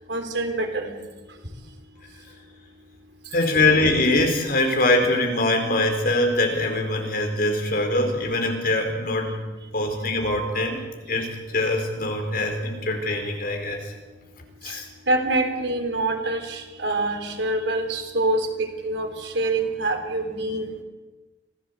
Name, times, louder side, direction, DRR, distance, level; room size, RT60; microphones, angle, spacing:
voice 1, 0.1-0.9 14.7-14.8 15.1-20.7, right 2 dB, 85° right, 5 dB, 3.7 m, -25 dB
voice 2, 3.3-9.4 9.7-10.8 11.1-13.9 14.6-14.9, left 2 dB, 55° left, 4 dB, 4.4 m, -23 dB
26.0 x 16.5 x 8.3 m, 1.2 s
head